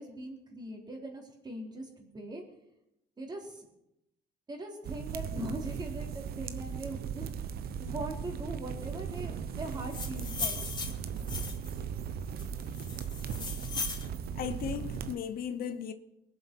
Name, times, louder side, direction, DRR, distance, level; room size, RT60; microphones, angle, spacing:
voice 1, 0.0-2.4 3.2-3.7 4.5-7.3 7.8-10.6, right 1 dB, 25° right, 3.7 m, -41 dB
sound 1, 4.8-15.1, right 7 dB, 65° right, 1.0 m, -38 dB
sound 2, 9.7-11.8 12.4-14.1, left 4 dB, 25° left, 3.0 m, -37 dB
voice 2, 14.3-15.9, left 8 dB, 60° left, 1.0 m, -36 dB
22.0 x 7.6 x 6.1 m
cardioid pair, 110°, 17 cm